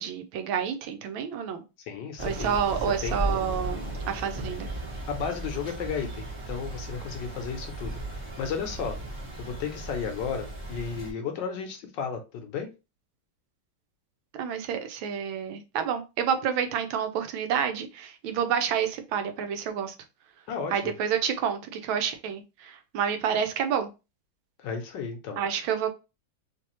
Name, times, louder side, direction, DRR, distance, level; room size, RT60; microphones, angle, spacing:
voice 1, 0.0-1.6 2.2-4.7 14.3-20.0 20.7-23.9 25.4-25.9, right 8 dB, 75° right, 1.4 m, -29 dB
voice 2, 1.8-2.6 3.0-3.2 5.1-12.7 20.5-20.9 24.6-25.6, left 6 dB, 70° left, 1.2 m, -34 dB
Thunder / Rain, 2.2-11.1, right 1 dB, 20° right, 0.9 m, -35 dB
3.3 x 3.2 x 3.0 m
omnidirectional pair, 2.2 m